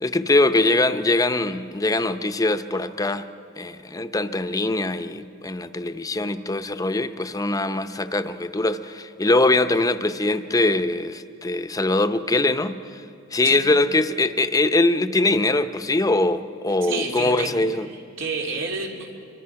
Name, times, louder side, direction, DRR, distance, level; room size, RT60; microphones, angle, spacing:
voice 1, 0.0-3.3 3.6-13.0 13.3-17.9, left 2 dB, 20° left, 10 dB, 0.7 m, -22 dB
voice 2, 16.8-17.5 17.9-19.1, right 3 dB, 90° right, 0 dB, 3.2 m, -29 dB
26.0 x 23.5 x 5.8 m, 2.6 s
head